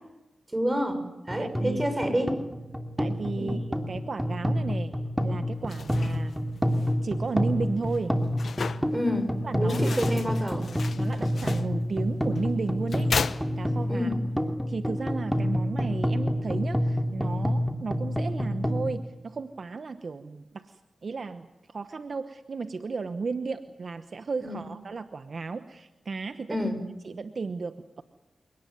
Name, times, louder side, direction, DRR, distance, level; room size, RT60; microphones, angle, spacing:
voice 1, 0.5-2.4 3.4-3.5 8.9-10.7 13.9-14.2 24.4-24.6 26.5-26.8, equal, 20° right, 8 dB, 6.2 m, -28 dB
sound 1, 1.3-18.9, equal, ahead, 2.9 m, -28 dB
voice 2, 1.4-1.8 3.0-4.9 5.2-6.3 7.0-8.2 9.4-10.1 11.0-13.1 13.6-14.1 14.7-26.7 27.0-28.0, right 4 dB, 60° right, 10 dB, 1.0 m, -34 dB
sound 2, 5.5-14.1, left 5 dB, 75° left, 0.9 m, -37 dB
28.0 x 18.5 x 9.4 m, 0.97 s
cardioid pair, 50°, 0 cm